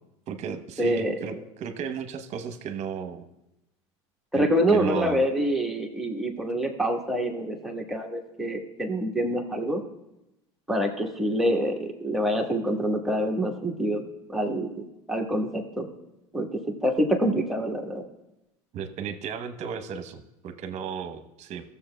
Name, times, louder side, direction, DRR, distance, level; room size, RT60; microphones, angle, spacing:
voice 1, 0.3-3.2 4.3-5.2 18.7-21.7, right 7 dB, 45° right, 8 dB, 0.9 m, -34 dB
voice 2, 0.8-1.1 4.3-9.8 10.7-14.0 14.3-14.7 15.1-15.9 16.3-16.5 16.8-18.0, equal, ahead, 0 dB, 1.3 m, -26 dB
15.0 x 7.0 x 2.2 m, 0.92 s
hypercardioid pair, 90°, 16 cm